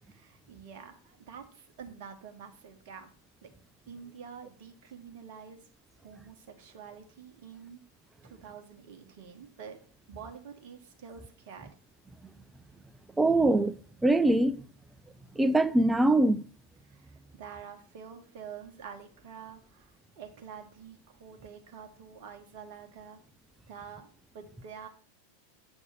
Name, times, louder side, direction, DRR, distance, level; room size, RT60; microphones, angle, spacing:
voice 1, 0.0-3.1 3.4-3.5 3.9-5.6 6.0-7.8 8.2-9.8 10.1-11.8 16.8-23.2 23.7-24.1 24.3-24.9, right 7 dB, 50° right, 1.4 m, -47 dB
voice 2, 13.2-13.7 14.0-14.6 15.4-16.4, right 2 dB, 10° right, 0.4 m, -23 dB
7.9 x 3.5 x 6.5 m
figure-of-eight pair, 90°, 0 cm